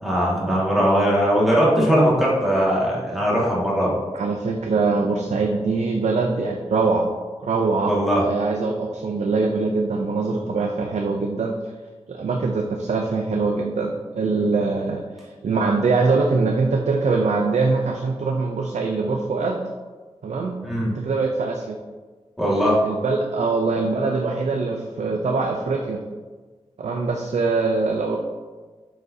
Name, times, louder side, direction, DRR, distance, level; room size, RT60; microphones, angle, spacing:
voice 1, 0.0-3.9 7.9-8.2 20.6-20.9 22.4-22.8, equal, ahead, -6 dB, 2.0 m, -20 dB
voice 2, 4.1-7.1 7.4-7.9 8.2-11.7 12.1-19.6 20.2-20.6 20.8-21.8 22.5-26.0 26.8-28.2, right 3 dB, 85° right, 1 dB, 0.6 m, -23 dB
7.7 x 5.0 x 2.8 m, 1.3 s
wide cardioid pair, 105°, 11 cm